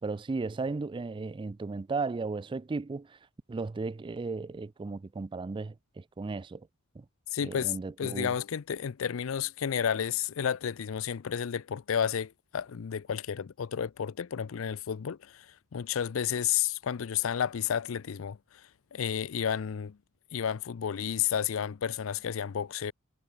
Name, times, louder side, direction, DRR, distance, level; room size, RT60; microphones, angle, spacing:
voice 1, 0.0-3.2 3.5-6.7 7.0-7.1 7.4-8.3, right 3 dB, 25° right, 0.3 m, -35 dB
voice 2, 7.3-20.0 20.3-22.9, left 8 dB, 70° left, 0.5 m, -32 dB
head